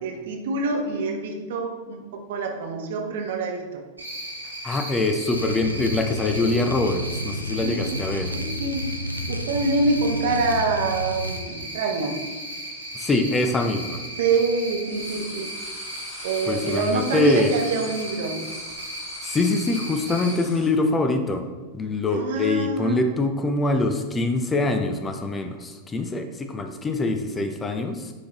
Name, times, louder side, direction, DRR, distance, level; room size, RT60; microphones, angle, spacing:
voice 1, 0.0-3.8 7.6-8.0 8.3-8.9 9.3-12.2 14.2-15.5 16.2-18.4 22.1-23.1, right 3 dB, 55° right, 2 dB, 1.0 m, -26 dB
Cricket, 4.0-20.3, right 1 dB, 80° right, 1.9 m, -36 dB
voice 2, 4.6-8.4 12.9-14.0 16.5-17.5 19.2-21.4 21.7-28.1, left 2 dB, 15° left, 6 dB, 0.6 m, -24 dB
sound 1, 5.3-11.4, left 1 dB, 90° left, 0.3 m, -31 dB
sound 2, 14.2-14.4 14.7-20.7, left 3 dB, 40° left, 1.5 m, -44 dB
9.8 x 3.6 x 2.9 m, 1.3 s
figure-of-eight pair, 90°, 0 cm